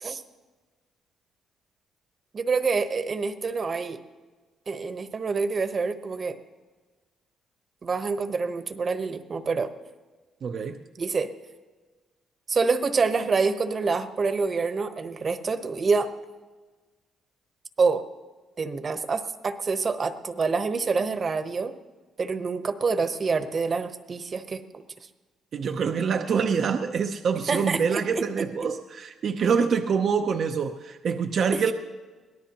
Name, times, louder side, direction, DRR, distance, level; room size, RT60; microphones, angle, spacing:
voice 1, 2.3-4.0 4.7-6.4 7.8-9.7 11.0-11.3 12.5-16.1 17.8-18.0 18.6-21.7 22.2-24.6 27.5-28.4, right 4 dB, 40° right, 9 dB, 1.1 m, -26 dB
voice 2, 10.4-10.8 25.5-31.7, right 6 dB, 60° right, 6 dB, 0.7 m, -25 dB
23.5 x 18.0 x 3.0 m, 1.3 s
cardioid pair, 90°, 0 cm